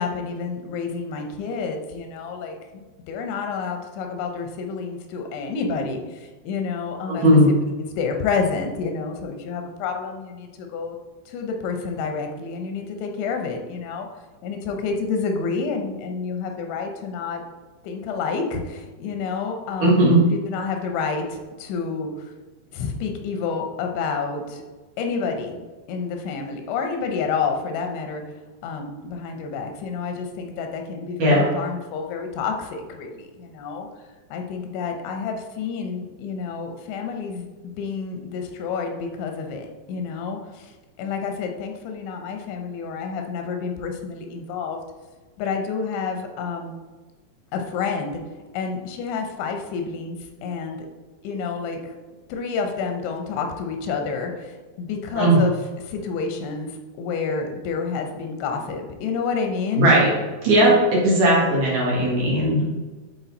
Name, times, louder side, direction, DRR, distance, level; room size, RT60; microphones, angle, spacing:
voice 1, 0.0-2.6 3.1-11.0 11.3-14.1 14.4-17.4 17.8-20.0 20.3-22.1 22.7-24.6 25.0-28.2 28.6-33.9 34.3-40.7 41.0-44.8 45.4-46.8 47.5-48.2 48.5-50.2 50.4-50.9 51.2-52.0 52.3-55.5 55.8-56.7 57.0-59.9 60.6-60.8, left 5 dB, 90° left, 4 dB, 3.3 m, -29 dB
voice 2, 7.1-7.5 19.8-20.2 31.2-31.4 55.1-55.4 59.8-60.1 60.4-62.7, right 1 dB, 55° right, -5 dB, 2.9 m, -17 dB
11.5 x 4.2 x 4.1 m, 1.3 s
omnidirectional pair, 5.1 m